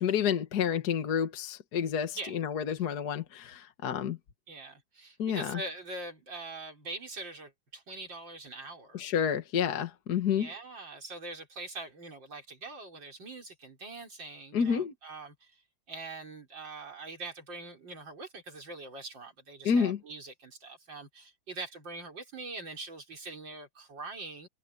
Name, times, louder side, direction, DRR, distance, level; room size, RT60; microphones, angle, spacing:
voice 1, 0.0-4.2 5.2-5.6 8.9-10.5 14.5-14.9 19.6-20.0, left 7 dB, 55° left, 1.8 m, -29 dB
voice 2, 4.5-9.0 10.3-15.6 15.9-24.5, right 3 dB, 65° right, 5.1 m, -43 dB
omnidirectional pair, 2.2 m